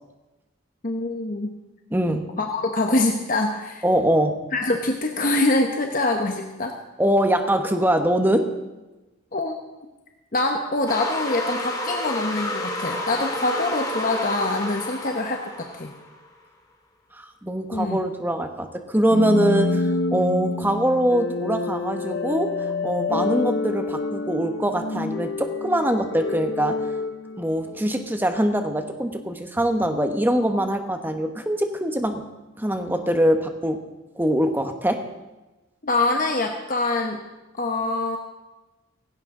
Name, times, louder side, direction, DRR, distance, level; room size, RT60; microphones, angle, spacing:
voice 1, 0.8-1.5 2.4-3.8 4.5-6.7 9.3-9.6 10.3-15.9 17.7-18.0 35.8-37.2 37.5-38.2, left 2 dB, 40° left, 3 dB, 1.0 m, -24 dB
voice 2, 1.9-2.2 3.8-4.4 7.0-8.5 17.1-22.5 22.8-26.8 27.4-32.2 32.6-33.8 34.1-35.0, right 1 dB, 10° right, 6 dB, 1.1 m, -23 dB
sound 1, 10.9-16.2, left 1 dB, 20° left, 1.8 m, -30 dB
sound 2, 19.1-28.1, left 3 dB, 55° left, 0.6 m, -28 dB
17.0 x 16.0 x 3.8 m, 1.1 s
head